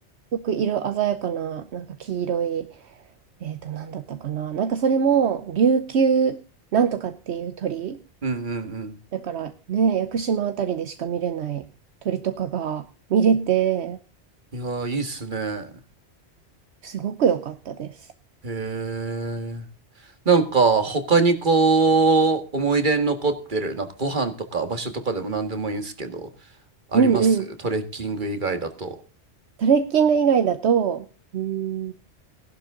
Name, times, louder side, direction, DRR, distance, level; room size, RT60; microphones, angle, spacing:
voice 1, 0.3-2.7 3.4-6.4 6.7-8.0 9.1-11.6 12.0-14.0 16.8-17.9 26.9-27.5 29.6-31.0 31.3-31.9, right 7 dB, 75° right, 10 dB, 1.1 m, -23 dB
voice 2, 8.2-8.9 14.5-15.7 18.4-19.6 20.3-26.3 26.9-27.3 27.6-29.0, right 4 dB, 45° right, 8 dB, 1.9 m, -23 dB
15.5 x 11.5 x 3.7 m, 0.36 s
omnidirectional pair, 1.2 m